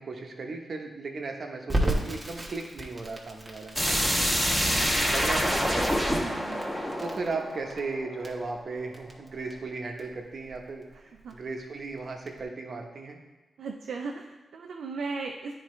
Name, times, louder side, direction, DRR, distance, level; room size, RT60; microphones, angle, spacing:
voice 1, 0.0-4.1 5.1-6.0 7.0-13.2, right 3 dB, 60° right, 2 dB, 0.9 m, -36 dB
Crackle, 1.7-12.4, right 1 dB, 25° right, 1.2 m, -35 dB
sound 1, 3.7-8.5, equal, 10° left, 1.5 m, -27 dB
voice 2, 4.7-5.1 6.1-6.8 11.1-11.4 13.6-15.6, right 4 dB, 85° right, 1 dB, 0.4 m, -38 dB
9.7 x 4.2 x 3.2 m, 1.1 s
cardioid pair, 70°, 0 cm